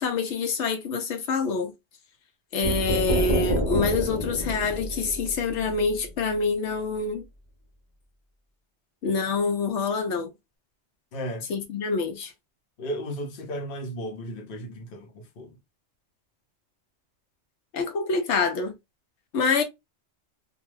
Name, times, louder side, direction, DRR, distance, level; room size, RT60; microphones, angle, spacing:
voice 1, 0.0-1.7 2.5-7.2 9.0-10.3 11.5-12.3 17.7-18.7 19.3-19.6, left 4 dB, 85° left, 1.0 m, -26 dB
sound 1, 2.6-6.4, equal, 30° left, 1.0 m, -28 dB
voice 2, 11.1-11.5 12.8-15.5, equal, 55° left, 0.9 m, -34 dB
2.4 x 2.3 x 3.0 m
omnidirectional pair, 1.2 m